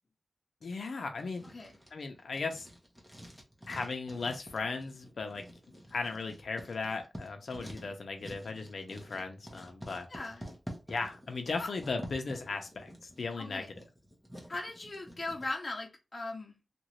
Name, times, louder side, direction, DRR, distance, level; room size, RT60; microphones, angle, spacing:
voice 1, 0.6-1.5 1.9-2.7 3.7-5.4 5.9-10.1 10.9-13.6, left 4 dB, 75° left, 0.6 m, -37 dB
Writing, 1.2-15.5, equal, 5° right, 1.0 m, -49 dB
voice 2, 10.1-10.5 11.6-11.7 13.4-13.7 14.5-16.5, left 2 dB, 45° left, 0.9 m, -39 dB
2.9 x 2.6 x 3.1 m
wide cardioid pair, 75°, 0 cm